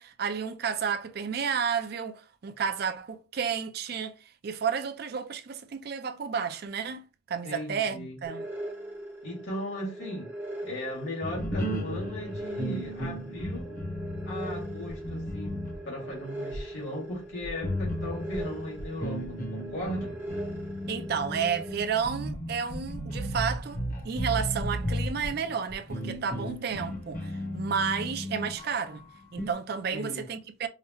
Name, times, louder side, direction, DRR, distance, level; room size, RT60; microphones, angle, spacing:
voice 1, 0.0-8.5 20.9-29.0 29.3-30.7, right 6 dB, 50° right, 0.4 m, -31 dB
voice 2, 7.4-8.2 9.2-10.3 10.6-13.8 14.2-20.1 29.9-30.2, left 1 dB, 70° left, 2.0 m, -37 dB
sound 1, 8.2-21.8, right 1 dB, 10° right, 0.7 m, -41 dB
sound 2, 11.2-16.2 16.5-16.6 17.4-29.5, equal, 40° left, 0.9 m, -35 dB
4.8 x 2.1 x 2.9 m
head